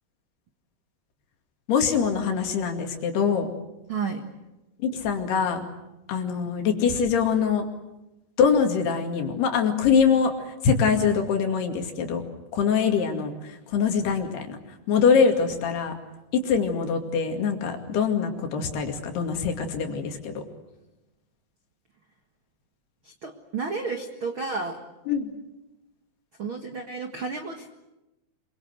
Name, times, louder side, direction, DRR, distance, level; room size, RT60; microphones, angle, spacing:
voice 1, 1.7-3.5 4.8-5.6 6.1-7.7 8.4-10.3 10.6-12.2 12.5-14.6 14.9-15.9 16.3-20.4 25.1-25.3, left 6 dB, 65° left, 4 dB, 4.2 m, -23 dB
voice 2, 3.9-4.2 13.1-13.2 23.0-24.8 26.4-27.7, right 4 dB, 80° right, 5 dB, 1.1 m, -32 dB
26.0 x 23.5 x 8.1 m, 0.98 s
omnidirectional pair, 5.1 m